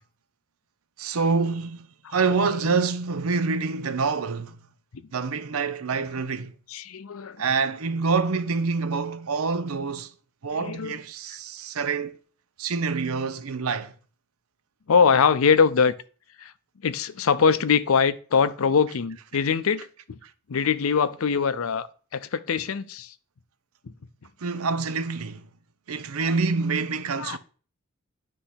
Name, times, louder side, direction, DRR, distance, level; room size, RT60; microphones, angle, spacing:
voice 1, 1.0-4.6 5.1-6.5 7.4-10.1 10.4-12.2 12.6-13.9 24.4-25.5 25.9-27.4, right 4 dB, 85° right, 0.7 m, -26 dB
voice 2, 2.0-2.8 5.9-6.2 6.7-7.7 10.5-11.0 14.9-15.9 16.4-16.5 16.8-20.2 20.5-23.1 26.2-26.4 27.2-27.4, left 6 dB, 75° left, 0.5 m, -23 dB
9.8 x 3.3 x 5.7 m
head